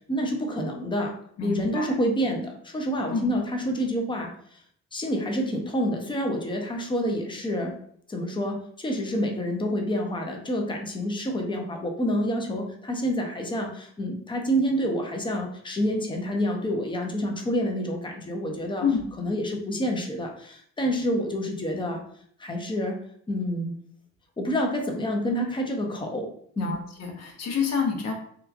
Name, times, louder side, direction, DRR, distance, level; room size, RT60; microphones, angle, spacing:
voice 1, 0.1-1.1 1.4-4.6 4.9-7.8 8.1-18.9 19.2-22.0 22.4-23.0 23.3-23.8 24.4-26.3 26.6-26.8, equal, 15° left, 2 dB, 0.5 m, -28 dB
voice 2, 1.4-1.9 3.1-3.3 18.8-19.1 26.6-28.1, left 6 dB, 60° left, 2 dB, 0.7 m, -28 dB
2.8 x 2.3 x 2.4 m, 0.63 s
cardioid pair, 90°, 30 cm